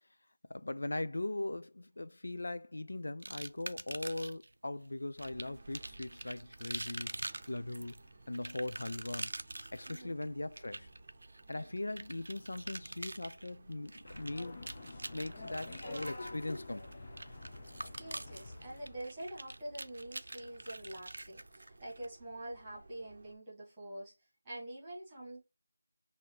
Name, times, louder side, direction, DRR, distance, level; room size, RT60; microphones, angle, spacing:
voice 1, 0.5-7.9 8.3-9.3 9.7-10.9 11.5-16.9, left 2 dB, 65° left, 0.4 m, -40 dB
sound 1, 3.2-4.5 5.2-22.1, right 2 dB, 60° right, 0.5 m, -45 dB
sound 2, 5.2-23.4, right 2 dB, 20° right, 0.7 m, -59 dB
voice 2, 9.9-10.2 11.5-11.6 18.0-24.1 24.4-25.5, right 1 dB, 5° right, 1.5 m, -46 dB
sound 3, 14.0-19.0, left 2 dB, 25° left, 0.7 m, -47 dB
6.2 x 2.7 x 3.0 m
figure-of-eight pair, 180°, 0 cm